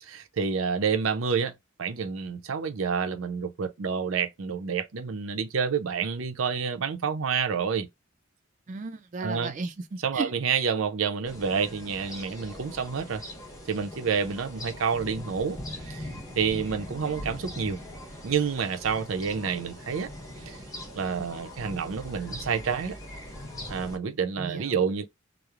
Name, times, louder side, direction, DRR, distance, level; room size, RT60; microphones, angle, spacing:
voice 1, 0.0-7.9 9.2-9.5 10.0-13.2 13.7-16.1 16.4-17.8 18.2-20.1 20.5-20.6 20.9-23.0 23.7-25.1, right 6 dB, 85° right, 0.6 m, -29 dB
voice 2, 8.7-10.3 24.4-24.8, right 4 dB, 40° right, 0.3 m, -35 dB
sound 1, 11.3-24.0, equal, 15° left, 0.9 m, -41 dB
3.0 x 2.0 x 2.4 m
head